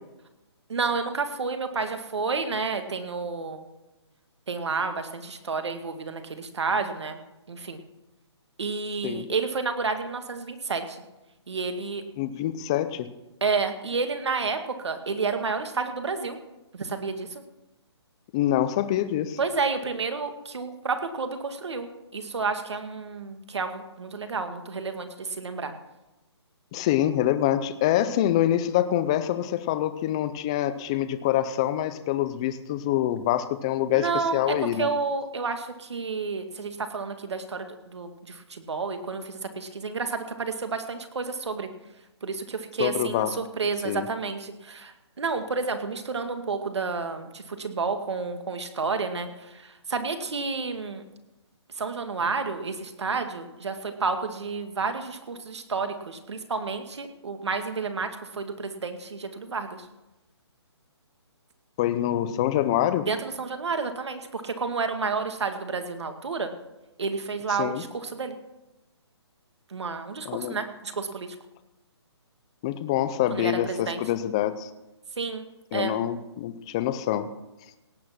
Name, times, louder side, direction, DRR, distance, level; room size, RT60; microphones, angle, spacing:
voice 1, 0.7-3.6 4.5-7.2 7.5-7.8 8.6-11.0 11.5-12.0 13.4-16.4 16.7-17.4 19.4-25.7 33.9-41.7 42.2-51.0 51.7-59.9 63.1-66.5 67.0-68.4 69.7-71.4 73.3-74.0 75.2-75.5 75.7-75.9, right 4 dB, 75° right, 7 dB, 2.1 m, -30 dB
voice 2, 12.2-13.1 18.3-19.4 26.7-34.9 42.8-43.4 43.8-44.1 61.8-63.1 67.6-67.8 70.2-70.6 72.6-74.7 75.7-77.3, left 12 dB, 10° left, 13 dB, 0.3 m, -25 dB
17.5 x 8.6 x 6.0 m, 0.98 s
hypercardioid pair, 165°, 14 cm